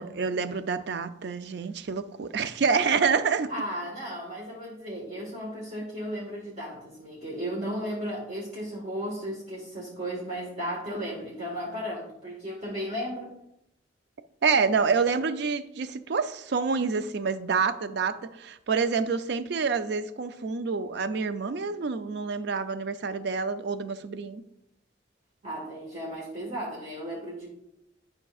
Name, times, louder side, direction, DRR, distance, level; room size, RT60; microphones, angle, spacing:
voice 1, 0.0-3.5 14.4-24.4, right 5 dB, 65° right, 12 dB, 0.4 m, -27 dB
voice 2, 3.5-13.3 25.4-27.5, equal, 40° right, -5 dB, 1.5 m, -35 dB
11.0 x 5.2 x 2.4 m, 0.82 s
head